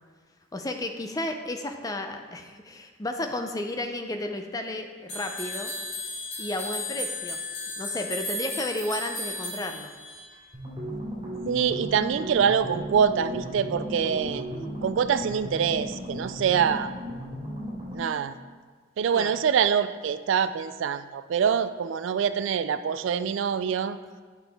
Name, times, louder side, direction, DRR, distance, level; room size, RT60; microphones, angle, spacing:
voice 1, 0.5-5.7 6.4-7.4 7.8-9.9 19.1-19.4, left 1 dB, 20° left, 5 dB, 0.5 m, -33 dB
sound 1, 5.1-10.3, left 2 dB, 55° left, 2.1 m, -34 dB
sound 2, 10.5-18.2, equal, 20° right, 2.4 m, -35 dB
voice 2, 11.5-14.4 14.8-16.9 17.9-18.3 19.0-24.0, right 7 dB, 70° right, 12 dB, 0.3 m, -25 dB
9.0 x 5.6 x 3.5 m, 1.5 s
head